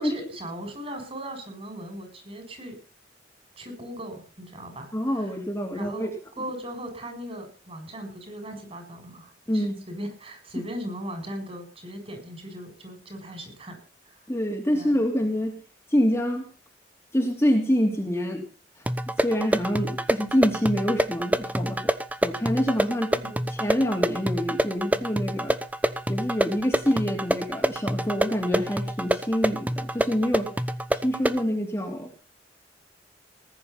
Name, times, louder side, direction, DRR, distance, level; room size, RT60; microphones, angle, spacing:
voice 1, 0.0-2.8 3.6-5.4 5.7-13.8 14.1-14.2 14.7-14.9 23.1-23.5, equal, 35° right, 5 dB, 7.8 m, -38 dB
voice 2, 4.9-6.1 9.5-9.8 14.3-15.6 15.9-16.4 17.1-18.4 19.2-21.8 22.2-23.1 23.6-25.6 26.1-30.5 30.9-32.1, equal, 15° left, 0 dB, 2.9 m, -26 dB
sound 1, 18.9-31.5, right 1 dB, 10° right, 1.0 m, -27 dB
19.5 x 10.5 x 5.8 m, 0.36 s
head